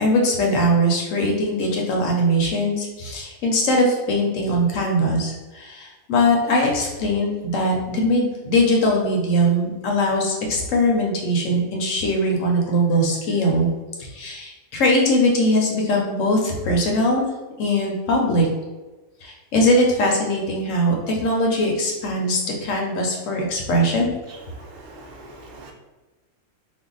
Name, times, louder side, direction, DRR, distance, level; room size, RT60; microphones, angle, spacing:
voice 1, 0.0-13.7 14.0-17.3 17.6-18.5 19.2-24.1, equal, 65° left, 0 dB, 0.9 m, -21 dB
voice 2, 24.8-25.7, right 2 dB, 65° right, 0 dB, 0.6 m, -42 dB
2.6 x 2.1 x 3.8 m, 1.2 s
omnidirectional pair, 1.6 m